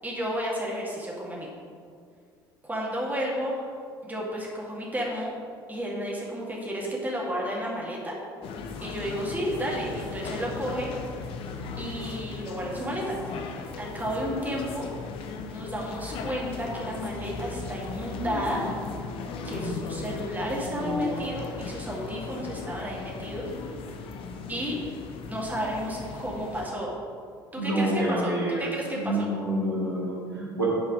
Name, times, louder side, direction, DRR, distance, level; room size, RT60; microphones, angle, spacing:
voice 1, 0.0-1.5 2.6-3.7 4.0-5.3 5.7-8.1 8.8-10.9 11.8-13.2 13.8-14.9 15.5-18.6 19.4-23.5 24.5-24.8 25.2-26.9 27.5-29.3, equal, 15° right, -4 dB, 2.2 m, -32 dB
sound 1, 8.4-26.7, left 5 dB, 50° left, 0.7 m, -37 dB
voice 2, 19.4-19.8 20.6-21.3 27.6-28.7 28.9-30.7, right 1 dB, 90° right, -6 dB, 1.5 m, -28 dB
9.0 x 4.7 x 5.1 m, 2.2 s
figure-of-eight pair, 60°, 12 cm